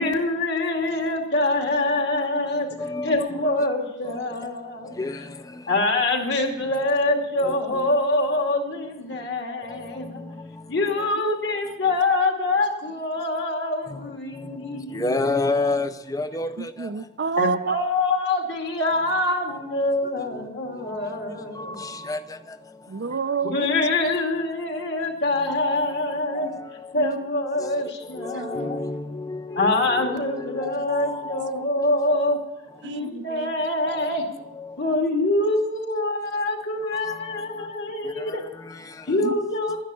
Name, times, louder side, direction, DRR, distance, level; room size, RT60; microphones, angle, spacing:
voice 1, 0.0-2.7 3.0-5.0 5.7-10.2 10.7-15.3 17.4-21.8 23.4-26.5 26.9-28.8 29.6-32.4 32.8-34.3 34.8-38.4 39.1-39.8, left 2 dB, 55° left, 2.5 m, -25 dB
voice 2, 2.8-3.7 4.0-4.2 4.9-5.6 7.4-7.9 9.7-10.6 11.0-11.1 13.9-16.9 18.9-19.2 19.5-19.8 20.2-20.5 20.8-21.2 21.5-22.6 25.4-27.1 27.6-31.6 33.9-34.2 34.4-34.8 36.9-37.3 38.0-39.3, left 2 dB, 20° left, 0.5 m, -32 dB
voice 3, 16.8-17.8 22.9-23.7 27.0-27.2 28.3-28.5 32.8-33.6 39.2-39.3, right 5 dB, 60° right, 0.5 m, -28 dB
12.0 x 10.5 x 7.0 m
head